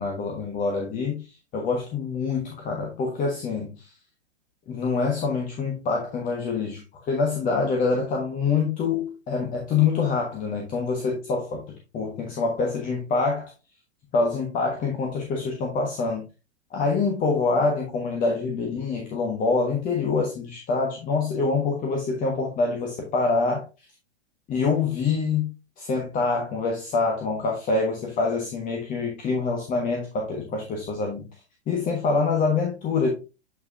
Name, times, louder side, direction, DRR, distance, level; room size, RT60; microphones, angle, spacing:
voice 1, 0.0-3.9 4.7-13.5 14.1-16.2 16.7-23.6 24.5-25.5 25.8-31.3 31.7-33.1, left 4 dB, 25° left, 0 dB, 1.4 m, -25 dB
8.2 x 4.8 x 2.6 m, 0.29 s
figure-of-eight pair, 105°, 34 cm